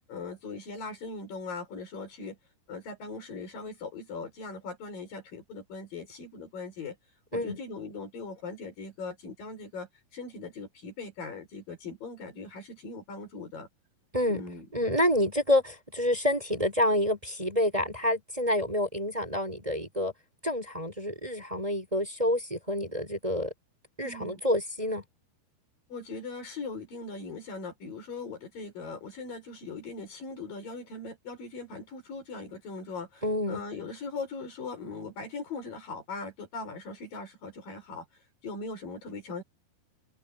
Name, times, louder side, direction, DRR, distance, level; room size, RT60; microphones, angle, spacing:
voice 1, 0.1-2.4 2.7-7.0 7.3-13.7 14.3-14.7 24.0-24.4 25.9-38.1 38.4-39.4, left 3 dB, 60° left, 6.8 m, -40 dB
voice 2, 14.7-20.1 20.4-23.5 24.0-25.0 33.2-33.6, left 1 dB, 10° right, 5.6 m, -28 dB
omnidirectional pair, 4.7 m